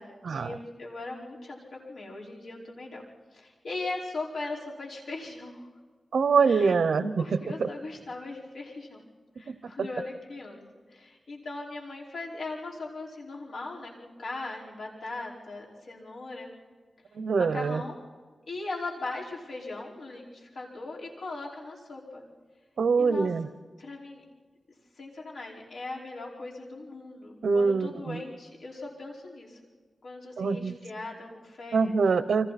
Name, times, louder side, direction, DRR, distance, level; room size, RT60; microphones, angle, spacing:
voice 1, 0.0-1.6 1.9-3.0 3.3-5.7 6.4-6.8 7.2-9.0 9.4-10.6 10.9-16.5 17.4-18.0 18.5-22.2 23.0-23.3 23.8-24.2 24.9-29.6 30.0-32.0, left 2 dB, 75° left, -3 dB, 5.1 m, -39 dB
voice 2, 6.1-7.2 7.6-7.7 9.5-9.6 17.2-17.8 22.8-23.5 27.4-28.2 30.4-30.7 31.7-32.5, right 5 dB, 80° right, 12 dB, 0.9 m, -24 dB
30.0 x 25.0 x 4.3 m, 1.5 s
wide cardioid pair, 110°, 0 cm